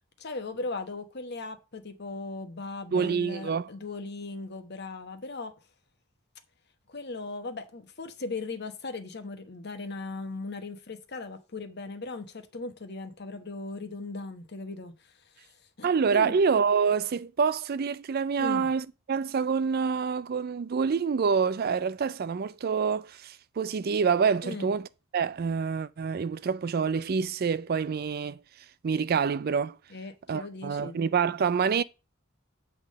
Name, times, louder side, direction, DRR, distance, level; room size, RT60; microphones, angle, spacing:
voice 1, 0.2-5.5 6.9-14.9 15.4-15.5 15.8-16.4 18.4-18.7 24.4-24.7 29.9-31.0, left 3 dB, 55° left, 1.1 m, -38 dB
voice 2, 2.9-3.7 15.8-24.9 25.1-28.4 28.8-29.8 30.3-31.8, right 6 dB, 45° right, 0.4 m, -27 dB
8.1 x 3.7 x 6.3 m
head